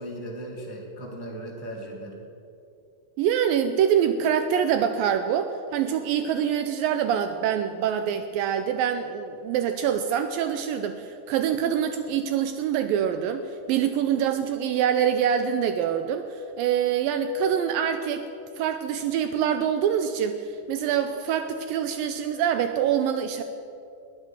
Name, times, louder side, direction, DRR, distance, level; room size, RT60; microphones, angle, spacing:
voice 1, 0.0-2.2, right 1 dB, 20° right, -2 dB, 0.5 m, -37 dB
voice 2, 3.2-18.2 18.6-23.4, right 8 dB, 80° right, 8 dB, 2.1 m, -25 dB
20.5 x 8.9 x 7.3 m, 2.6 s
omnidirectional pair, 4.5 m